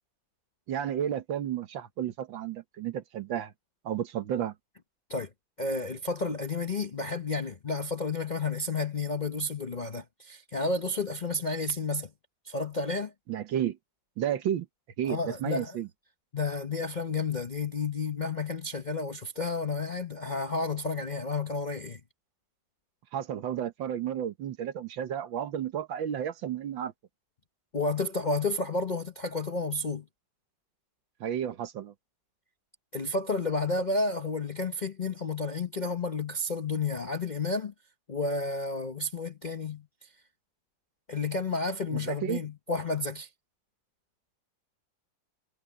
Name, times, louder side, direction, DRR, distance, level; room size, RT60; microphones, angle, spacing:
voice 1, 0.7-3.5 3.9-4.5 13.3-13.8 14.2-14.7 15.0-15.9 23.1-26.9 31.2-31.9 41.9-42.4, right 10 dB, 85° right, 1.9 m, -32 dB
voice 2, 5.6-12.1 12.4-13.1 15.0-15.8 16.3-22.0 27.7-30.1 32.9-37.7 38.1-40.1 41.1-43.3, left 3 dB, 45° left, 0.6 m, -31 dB
omnidirectional pair, 2.0 m